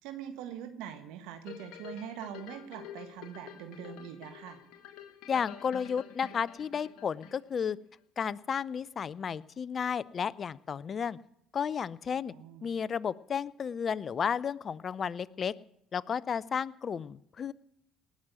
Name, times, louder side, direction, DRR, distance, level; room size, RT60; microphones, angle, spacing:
voice 1, 0.0-4.6 12.3-12.7, right 9 dB, 75° right, 8 dB, 1.5 m, -43 dB
sound 1, 1.4-7.7 8.2-8.3, left 9 dB, 75° left, 1.5 m, -48 dB
voice 2, 5.3-7.8 8.2-11.2 11.5-12.3 12.6-15.5 15.9-17.5, left 7 dB, 45° left, 20 dB, 0.6 m, -33 dB
18.5 x 6.3 x 9.3 m, 0.77 s
supercardioid pair, 75°, 0 cm